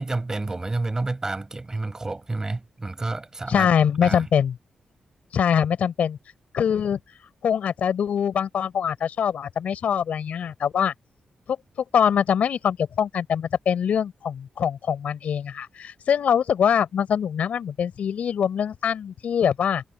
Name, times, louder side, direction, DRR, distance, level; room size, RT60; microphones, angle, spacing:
voice 1, 0.0-3.7 4.0-4.2, right 2 dB, 25° right, 7.1 m, -29 dB
voice 2, 3.5-4.6 5.3-6.2 6.5-7.0 7.4-10.9 11.5-11.6 11.9-19.8, left 8 dB, 80° left, 6.0 m, -23 dB
cardioid pair, 95°, 2 cm